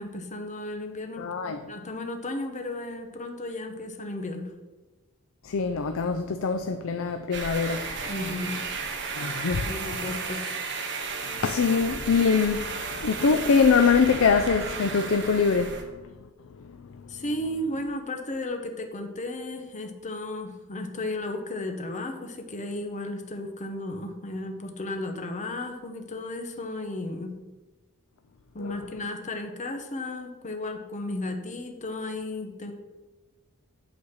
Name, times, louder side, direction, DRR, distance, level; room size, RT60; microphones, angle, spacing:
voice 1, 0.0-4.4 8.1-8.6 9.6-10.6 17.1-27.3 28.5-32.7, left 1 dB, 35° left, 0.9 m, -34 dB
voice 2, 1.2-1.6 5.4-7.8 9.2-9.7 11.4-16.0 16.6-16.8 28.6-28.8, left 5 dB, 65° left, 0.5 m, -24 dB
sound 1, 7.3-15.8, right 4 dB, 55° right, 1.2 m, -34 dB
8.5 x 4.1 x 6.5 m
head